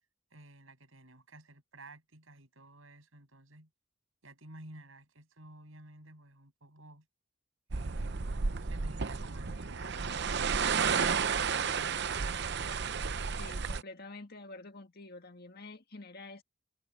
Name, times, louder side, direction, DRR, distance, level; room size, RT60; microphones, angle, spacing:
voice 1, 0.3-3.7 4.2-7.1 7.7-12.9, right 2 dB, 75° right, 6.9 m, -53 dB
sound 1, 7.7-13.8, right 5 dB, 55° right, 0.7 m, -32 dB
voice 2, 13.4-16.4, left 2 dB, 50° left, 1.9 m, -48 dB
head